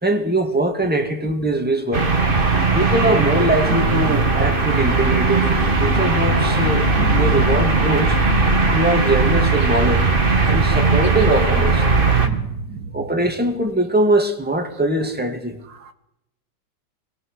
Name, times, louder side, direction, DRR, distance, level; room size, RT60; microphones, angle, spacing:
voice 1, 0.0-2.1 2.7-5.5 5.8-8.2 8.7-10.1 10.4-11.9 12.9-15.6, right 1 dB, 5° right, 2.2 m, -21 dB
sound 1, 1.9-12.3, right 3 dB, 30° right, 2.1 m, -18 dB
voice 2, 7.0-7.5 12.2-13.0 15.8-15.9, right 4 dB, 90° right, 2.1 m, -28 dB
26.0 x 20.0 x 6.4 m
omnidirectional pair, 1.9 m